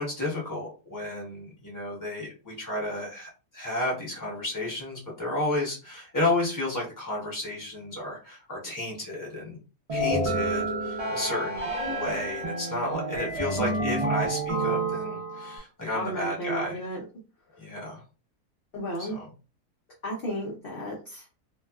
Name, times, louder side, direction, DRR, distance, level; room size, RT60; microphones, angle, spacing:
voice 1, 0.0-9.6 9.9-16.8 17.6-18.0 19.0-19.3, left 1 dB, 15° left, -4 dB, 1.0 m, -32 dB
sound 1, 9.9-15.6, right 2 dB, 50° right, 0.4 m, -29 dB
voice 2, 15.9-17.0 18.7-19.2 20.0-21.2, equal, 55° left, -3 dB, 0.6 m, -33 dB
2.7 x 2.2 x 2.3 m, 0.34 s
omnidirectional pair, 1.7 m